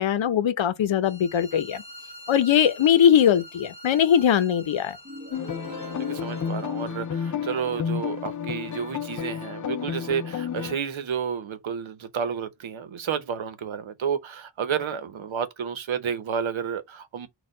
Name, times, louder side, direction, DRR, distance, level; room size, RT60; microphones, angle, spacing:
voice 1, 0.0-1.8 2.3-5.0, left 9 dB, 80° left, 0.7 m, -20 dB
sound 1, 1.0-6.9, equal, 15° left, 1.1 m, -46 dB
sound 2, 5.0-7.9, right 1 dB, 30° right, 1.4 m, -43 dB
sound 3, 5.3-10.8, left 8 dB, 45° left, 0.4 m, -31 dB
voice 2, 5.7-17.3, right 7 dB, 85° right, 0.9 m, -31 dB
4.3 x 2.4 x 4.8 m
wide cardioid pair, 150°, 46 cm